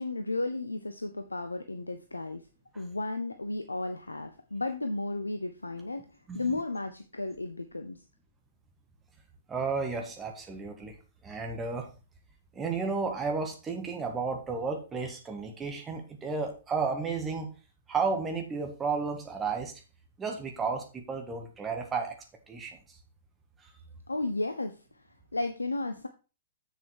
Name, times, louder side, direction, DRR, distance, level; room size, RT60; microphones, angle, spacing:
voice 1, 0.0-2.4 2.8-6.0 6.3-8.0 24.1-24.8 25.3-26.1, left 2 dB, 80° left, 8 dB, 0.8 m, -33 dB
voice 2, 9.5-11.0 11.2-11.9 12.5-17.5 17.9-19.8 20.2-22.2 22.5-22.8 23.6-23.7, right 4 dB, 15° right, 3 dB, 1.6 m, -32 dB
7.7 x 6.9 x 4.7 m, 0.33 s
figure-of-eight pair, 110°, 0 cm